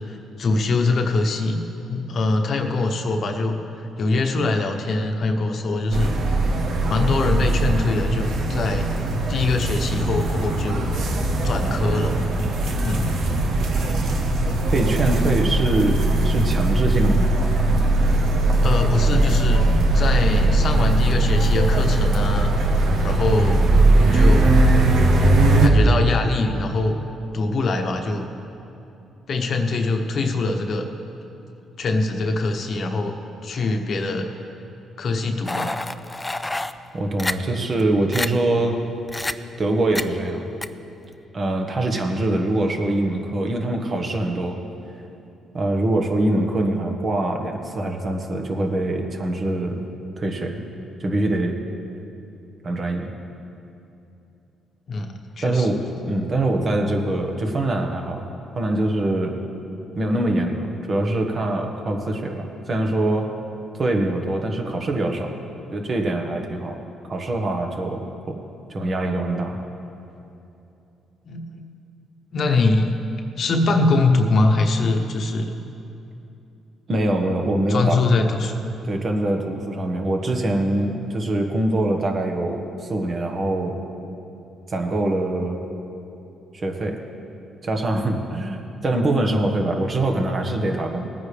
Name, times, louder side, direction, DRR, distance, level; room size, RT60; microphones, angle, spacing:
voice 1, 0.1-3.6 4.0-6.2 6.9-8.9 9.3-10.9 11.4-12.2 12.8-13.1 18.6-19.6 19.9-22.5 23.0-23.7 24.1-24.6 25.6-27.0 27.3-28.3 29.3-30.9 31.8-33.1 33.4-34.3 35.0-35.7 54.9-55.1 55.4-55.8 71.2-71.7 72.3-72.9 73.4-75.5 77.7-78.6, left 3 dB, 55° left, 4 dB, 1.1 m, -23 dB
sound 1, 5.9-25.7, right 2 dB, 75° right, 1.2 m, -19 dB
voice 2, 14.7-17.4 36.9-38.8 39.6-40.5 41.3-44.6 45.5-49.8 50.2-50.6 51.0-51.6 52.6-53.1 55.4-58.2 58.5-59.4 59.9-63.3 63.8-65.3 65.7-66.7 67.1-68.4 68.7-69.6 76.9-78.0 78.8-82.6 82.9-83.8 84.7-85.6 86.5-87.0 87.6-91.1, right 1 dB, 45° right, 3 dB, 1.4 m, -23 dB
sound 2, 35.5-36.7 37.2-37.3 37.8-37.9 38.1-38.3 39.1-39.3 40.0-40.1 40.6-40.7, left 2 dB, 15° left, 0.4 m, -27 dB
19.0 x 9.5 x 3.4 m, 2.8 s
cardioid pair, 90°, 0 cm